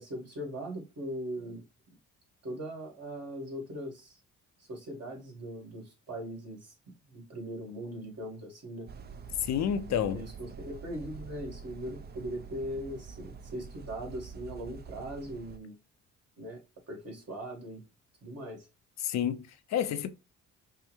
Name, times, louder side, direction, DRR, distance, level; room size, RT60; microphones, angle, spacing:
voice 1, 0.0-1.6 2.4-4.2 4.6-6.7 7.1-8.9 9.9-15.7 16.4-16.6 16.9-17.8 18.2-18.7, equal, 55° right, 2.2 m, -40 dB
sound 1, 8.9-15.6, right 5 dB, 35° right, 0.4 m, -46 dB
voice 2, 9.4-10.2 19.0-20.1, left 9 dB, 65° left, 0.5 m, -30 dB
5.5 x 2.1 x 3.0 m
cardioid pair, 90°, 30 cm